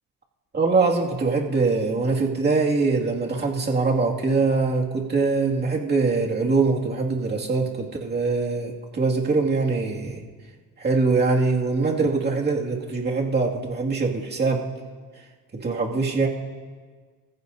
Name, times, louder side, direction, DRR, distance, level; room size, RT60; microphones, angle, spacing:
voice 1, 0.5-10.2 10.8-14.7 15.5-16.3, right 3 dB, 30° right, -1 dB, 2.3 m, -23 dB
29.5 x 15.0 x 2.7 m, 1.5 s
cardioid pair, 95°, 35 cm